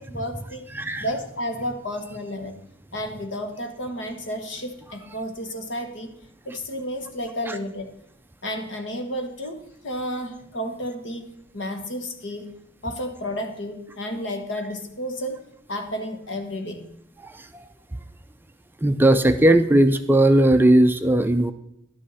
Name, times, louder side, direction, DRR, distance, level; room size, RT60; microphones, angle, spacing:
voice 1, 0.0-0.7 1.0-2.6 2.9-6.1 6.4-7.9 8.4-12.5 12.8-15.4 15.7-16.9, equal, 65° left, 5 dB, 1.5 m, -32 dB
voice 2, 0.7-1.1 7.5-7.6 17.2-17.6 18.8-21.5, right 1 dB, 10° right, 8 dB, 0.4 m, -18 dB
11.5 x 9.7 x 4.1 m, 0.77 s
head